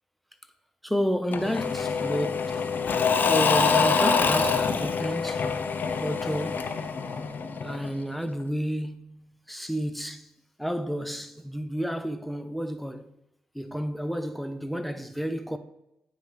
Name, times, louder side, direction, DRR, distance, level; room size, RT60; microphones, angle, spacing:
voice 1, 0.8-2.3 3.2-5.5 5.9-6.8 7.6-10.3 10.6-13.1 13.5-15.6, equal, ahead, 0.6 m, -31 dB
Engine / Mechanisms / Drill, 1.3-8.0, left 5 dB, 60° left, 0.6 m, -25 dB
9.3 x 3.2 x 5.1 m
cardioid pair, 65°, 4 cm